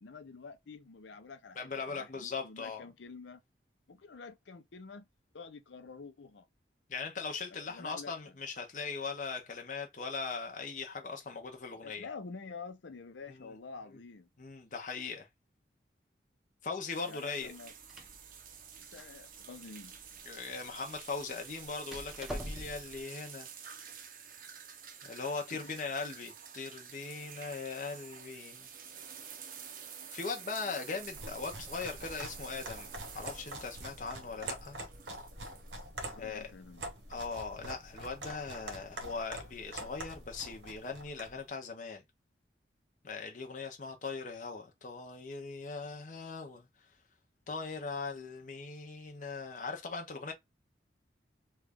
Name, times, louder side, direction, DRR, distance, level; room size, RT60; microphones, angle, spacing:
voice 1, 0.0-3.4 3.9-5.1 5.3-6.5 7.5-8.4 11.7-14.3 17.1-17.7 18.7-20.0 25.5-26.0 36.0-36.9, left 4 dB, 90° left, 0.6 m, -48 dB
voice 2, 1.6-2.8 6.9-12.0 13.4-13.5 14.4-15.3 16.6-17.5 20.3-23.5 25.0-28.7 30.1-32.9 33.1-34.8 36.2-36.5 37.1-42.0 43.0-46.7 47.5-50.3, left 4 dB, 45° left, 0.7 m, -40 dB
sound 1, 16.9-35.9, right 7 dB, 50° right, 0.6 m, -50 dB
Door, 17.5-23.0, equal, 5° right, 0.6 m, -47 dB
sound 2, 31.0-41.4, right 1 dB, 80° right, 1.0 m, -45 dB
3.1 x 2.4 x 3.4 m
head